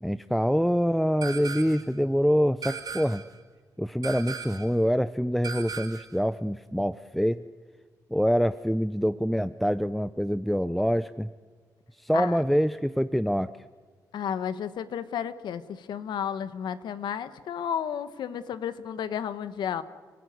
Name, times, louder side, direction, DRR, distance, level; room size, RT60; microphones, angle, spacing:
voice 1, 0.0-3.2 3.8-7.4 8.1-11.3 12.0-13.5, equal, ahead, 14 dB, 0.6 m, -25 dB
sound 1, 1.2-1.9 2.6-3.4 4.0-4.8 5.4-6.2, right 6 dB, 55° right, 2.4 m, -37 dB
voice 2, 14.1-19.8, left 8 dB, 80° left, 13 dB, 1.3 m, -32 dB
30.0 x 16.0 x 9.4 m, 1.5 s
cardioid pair, 70°, 8 cm